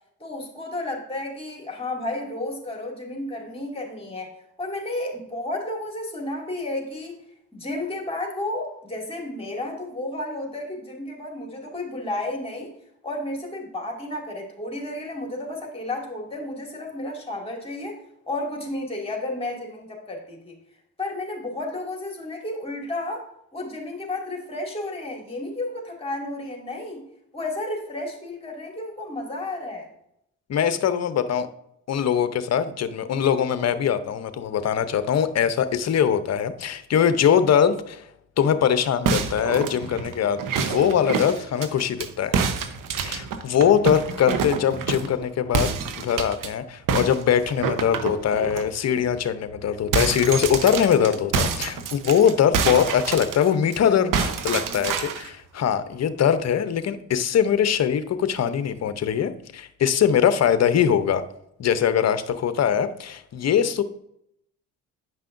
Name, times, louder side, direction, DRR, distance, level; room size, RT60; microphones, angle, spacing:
voice 1, 0.2-7.2 7.5-12.7 13.0-20.6 21.0-27.0 27.3-29.9, left 2 dB, 15° left, 0 dB, 2.3 m, -32 dB
voice 2, 30.5-31.5 31.9-38.1 38.4-42.4 43.0-61.2 61.6-63.8, left 8 dB, 45° left, 12 dB, 0.7 m, -22 dB
sound 1, 39.1-42.1 42.3-45.2 45.5-46.5 46.9-48.6 49.1-49.2 49.5-53.8 54.1-55.3, right 6 dB, 60° right, 1.0 m, -27 dB
9.1 x 5.5 x 2.6 m, 0.76 s
hypercardioid pair, 60°, 37 cm